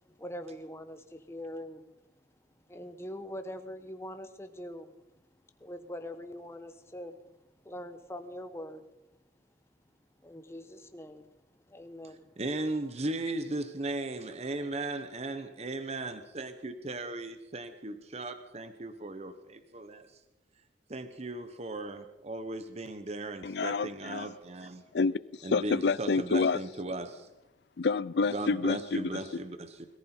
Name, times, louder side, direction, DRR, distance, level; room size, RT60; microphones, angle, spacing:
voice 1, 0.2-1.8 2.7-4.9 5.6-7.1 7.6-8.8 10.2-11.3 11.7-12.3, left 1 dB, 15° left, 8 dB, 1.1 m, -43 dB
voice 2, 12.4-20.1 20.9-24.8 25.4-27.3 28.3-29.9, right 2 dB, 35° right, 9 dB, 0.9 m, -37 dB
voice 3, 23.4-24.3 24.9-26.6 27.8-29.1, left 4 dB, 60° left, 19 dB, 0.4 m, -28 dB
21.5 x 14.5 x 4.4 m, 0.99 s
head